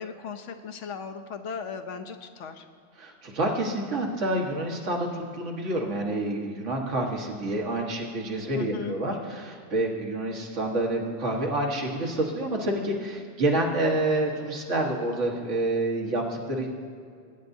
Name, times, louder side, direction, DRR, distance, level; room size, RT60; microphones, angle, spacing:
voice 1, 0.0-2.7 8.5-8.9, left 6 dB, 80° left, 7 dB, 1.0 m, -37 dB
voice 2, 3.0-16.7, right 1 dB, 75° right, -1 dB, 1.7 m, -28 dB
20.5 x 9.2 x 2.7 m, 2.2 s
omnidirectional pair, 1.3 m